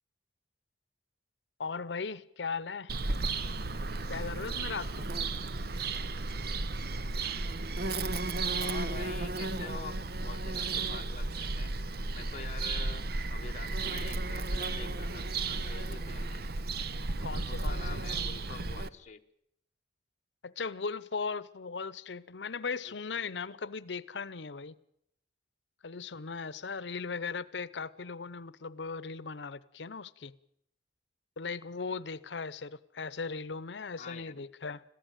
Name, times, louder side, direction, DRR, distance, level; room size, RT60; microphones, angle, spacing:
voice 1, 1.6-2.9 4.1-5.1 17.2-18.0 20.4-24.8 25.8-30.3 31.4-34.8, left 5 dB, 85° left, 0.8 m, -38 dB
Bird vocalization bird call bird song, 2.9-18.9, right 3 dB, 60° right, 0.8 m, -34 dB
voice 2, 8.6-11.7 12.1-16.4 17.5-19.2 22.8-23.2 34.0-34.4, left 4 dB, 45° left, 1.1 m, -46 dB
22.0 x 15.0 x 9.0 m
head